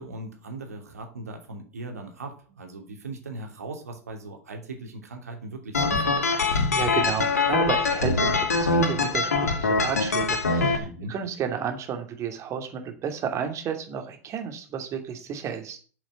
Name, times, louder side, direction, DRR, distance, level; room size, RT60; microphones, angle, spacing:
voice 1, 0.0-6.3 10.8-11.1, right 2 dB, 80° right, 3 dB, 2.7 m, -39 dB
sound 1, 5.7-10.8, left 3 dB, 80° left, 2.0 m, -23 dB
voice 2, 6.7-15.8, right 7 dB, 35° right, 5 dB, 2.8 m, -32 dB
7.9 x 7.8 x 8.2 m, 0.40 s
figure-of-eight pair, 85°, 8 cm